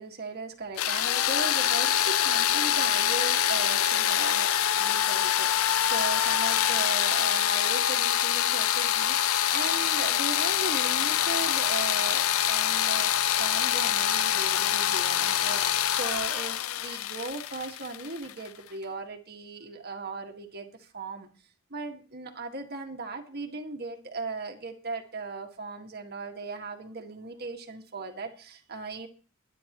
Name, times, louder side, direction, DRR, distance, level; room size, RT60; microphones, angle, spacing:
voice 1, 0.0-4.5 4.7-21.3 21.7-29.1, right 3 dB, 50° right, 4 dB, 1.8 m, -38 dB
sound 1, 0.8-18.5, left 10 dB, 85° left, 0.5 m, -25 dB
22.5 x 9.9 x 3.0 m, 0.35 s
head